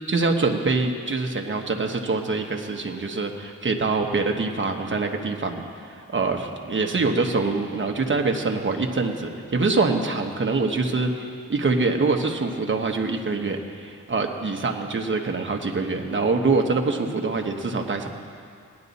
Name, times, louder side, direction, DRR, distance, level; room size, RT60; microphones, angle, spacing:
voice 1, 0.1-18.1, right 3 dB, 35° right, 3 dB, 1.1 m, -25 dB
18.0 x 10.5 x 4.1 m, 2.4 s
wide cardioid pair, 105°, 34 cm